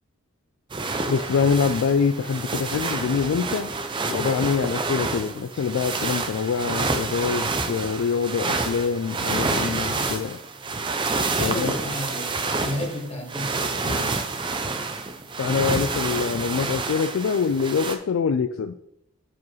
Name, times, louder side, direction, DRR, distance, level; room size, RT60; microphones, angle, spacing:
sound 1, 0.7-18.0, right 3 dB, 20° right, 0.4 m, -28 dB
voice 1, 0.9-3.7 4.1-10.4 11.4-11.7 12.8-12.9 13.8-14.1 15.4-18.7, left 5 dB, 70° left, 10 dB, 0.3 m, -25 dB
voice 2, 11.4-14.1, equal, 25° left, -1 dB, 1.7 m, -33 dB
9.4 x 5.0 x 3.1 m, 0.80 s
head